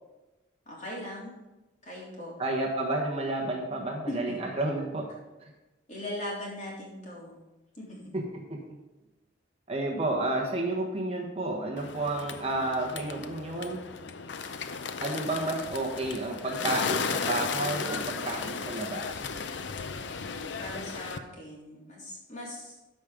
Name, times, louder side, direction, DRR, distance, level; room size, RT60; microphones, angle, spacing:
voice 1, 0.7-1.3 1.8-2.3 4.1-4.4 5.9-7.4 7.8-8.1 20.6-22.8, left 1 dB, 40° left, -4 dB, 3.2 m, -39 dB
voice 2, 2.4-5.1 8.1-8.6 9.7-13.9 15.0-19.3, right 2 dB, 30° right, 0 dB, 1.3 m, -31 dB
Bird, 11.8-21.2, left 5 dB, 70° left, 0.6 m, -35 dB
13.5 x 5.2 x 5.1 m, 1.0 s
head